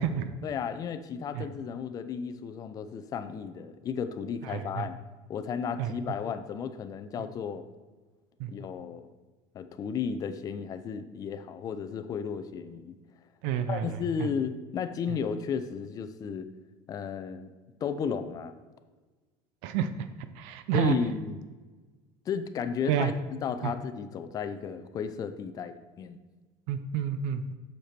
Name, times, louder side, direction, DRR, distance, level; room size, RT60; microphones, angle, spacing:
voice 1, 0.4-5.0 5.3-7.6 8.5-9.1 9.5-13.0 13.7-16.5 16.9-17.5 17.8-18.5 20.7-21.4 22.3-23.1 23.4-26.2, left 6 dB, 30° left, 10 dB, 0.6 m, -34 dB
voice 2, 4.5-4.8 5.8-5.9 8.4-8.5 13.4-13.9 19.6-19.9 20.4-21.0 22.9-23.1 26.7-27.5, right 9 dB, 70° right, 10 dB, 0.6 m, -29 dB
7.9 x 6.8 x 4.4 m, 1.3 s
cardioid pair, 155°, 12 cm